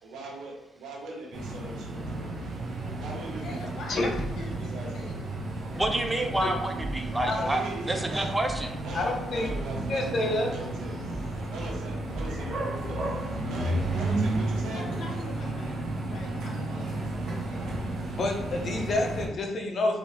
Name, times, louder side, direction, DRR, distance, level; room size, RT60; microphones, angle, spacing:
voice 1, 0.0-2.4 3.0-3.6 4.5-5.0 7.2-8.4 8.8-10.9 11.5-13.0 13.4-14.9, right 2 dB, 80° right, -3 dB, 1.3 m, -40 dB
sound 1, 1.3-19.3, right 2 dB, 65° right, 0.9 m, -33 dB
voice 2, 3.4-5.3 14.7-17.8, left 2 dB, 75° left, -1 dB, 1.2 m, -43 dB
sound 2, 4.1-4.5 5.8-6.0 6.3-6.4 6.8-7.2 8.4-8.6 8.9-9.0 9.4-9.9 11.1-11.3 11.6-11.7 12.1-12.5 13.8-14.0 14.3-14.4, right 1 dB, 5° left, 1.1 m, -38 dB
voice 3, 5.7-8.7, right 1 dB, 10° right, 4 dB, 0.6 m, -29 dB
voice 4, 8.9-9.5 9.8-10.5 18.1-20.0, left 2 dB, 50° left, 2 dB, 0.8 m, -28 dB
4.1 x 2.7 x 3.3 m, 0.86 s
cardioid pair, 90°, 0 cm